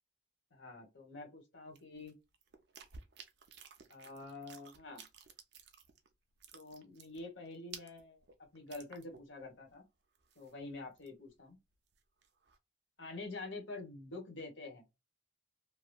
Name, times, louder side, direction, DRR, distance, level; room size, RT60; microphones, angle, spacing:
voice 1, 0.5-2.1 3.9-5.0 6.5-8.2 8.5-9.8 10.3-11.6 13.0-14.8, left 3 dB, 75° left, 1.4 m, -47 dB
sound 1, 1.8-6.1 6.4-9.4 9.7-9.8 10.1-11.3 11.7-12.6, right 6 dB, 55° right, 0.6 m, -55 dB
3.0 x 2.6 x 2.3 m
head